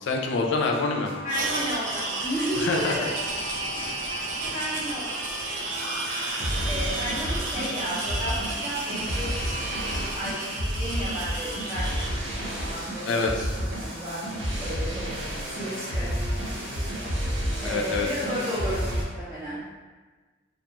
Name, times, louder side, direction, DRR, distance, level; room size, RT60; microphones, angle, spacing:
voice 1, 0.0-1.1 2.6-2.9 13.1-13.3 17.6-18.1, left 4 dB, 65° left, 1 dB, 0.3 m, -25 dB
sound 1, 0.7-19.0, equal, 80° right, 0.8 m, -32 dB
voice 2, 1.2-3.1 4.4-5.2 5.5-5.6 6.6-14.2 14.6-15.0 15.4-16.2 17.6-19.6, equal, 15° right, -13 dB, 0.4 m, -33 dB
sound 2, 1.3-12.1, right 2 dB, 65° right, 0.5 m, -32 dB
2.4 x 2.3 x 2.9 m, 1.3 s
head